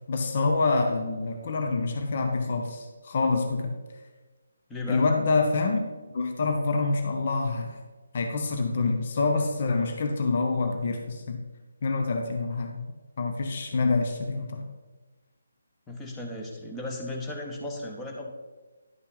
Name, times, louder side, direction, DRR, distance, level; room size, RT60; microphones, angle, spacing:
voice 1, 0.1-3.7 4.9-5.8 6.1-7.8 8.1-11.4 11.8-12.8 13.2-14.7, left 3 dB, 40° left, 4 dB, 0.9 m, -26 dB
voice 2, 4.7-5.1 15.9-18.3, left 1 dB, 10° left, 0 dB, 1.1 m, -35 dB
11.0 x 5.6 x 4.0 m, 1.2 s
figure-of-eight pair, 145°, 0 cm